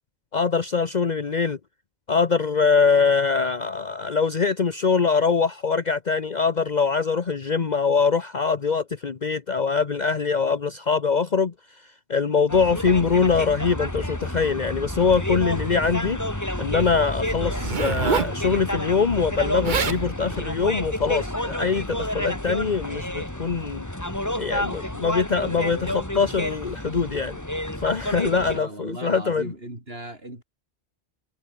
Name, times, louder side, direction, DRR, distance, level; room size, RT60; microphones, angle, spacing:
voice 1, 0.3-1.6 2.1-11.5 12.1-16.2 16.6-23.9 24.4-27.4 27.8-29.4, left 5 dB, 45° left, 1.1 m, -23 dB
sound 1, 12.5-28.6, left 1 dB, 15° left, 3.1 m, -30 dB
Zipper (clothing), 17.5-18.4 19.4-19.5 19.6-20.0 20.7-21.0, right 6 dB, 50° right, 1.1 m, -26 dB
voice 2, 28.2-30.4, right 1 dB, 75° right, 7.0 m, -37 dB
omnidirectional pair, 1.0 m